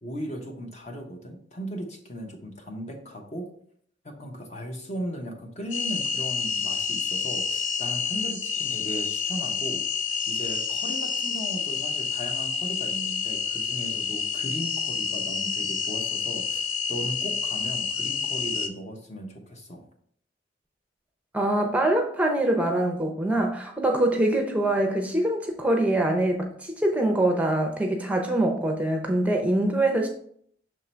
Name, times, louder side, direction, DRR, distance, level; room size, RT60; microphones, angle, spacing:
voice 1, 0.0-3.5 4.0-19.8, equal, 40° left, 3 dB, 1.1 m, -37 dB
sound 1, 5.7-18.7, left 6 dB, 85° left, 0.8 m, -29 dB
voice 2, 21.3-30.1, right 1 dB, 10° right, 3 dB, 0.6 m, -24 dB
6.2 x 3.7 x 4.4 m, 0.63 s
head